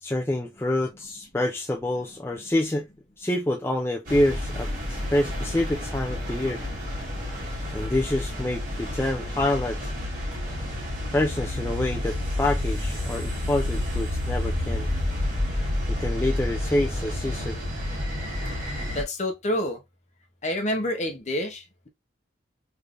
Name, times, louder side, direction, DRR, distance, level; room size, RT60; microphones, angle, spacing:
voice 1, 0.0-2.9 3.2-6.6 7.4-9.9 11.1-14.9 15.9-17.6, left 1 dB, 10° left, 0.4 m, -27 dB
sound 1, 4.0-19.0, left 1 dB, 45° right, 1.8 m, -30 dB
voice 2, 18.9-19.8 20.4-21.9, left 1 dB, 35° left, 1.0 m, -28 dB
3.3 x 3.3 x 2.5 m
head